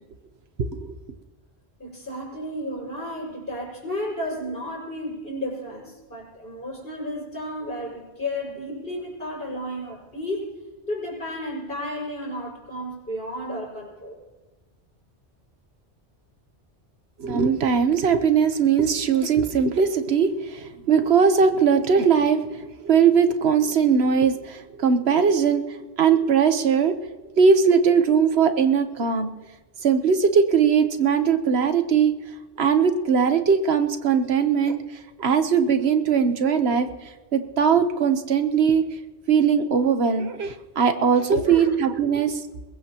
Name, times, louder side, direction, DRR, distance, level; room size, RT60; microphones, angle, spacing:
voice 1, 1.8-10.5 10.9-14.2 41.3-41.7, left 1 dB, 55° left, -4 dB, 5.8 m, -32 dB
voice 2, 17.2-27.0 27.4-29.3 29.8-32.1 32.6-34.8 35.2-36.9 37.3-38.8 39.3-42.4, right 6 dB, 65° right, 8 dB, 1.3 m, -20 dB
22.0 x 20.0 x 3.0 m, 1.2 s
omnidirectional pair, 1.1 m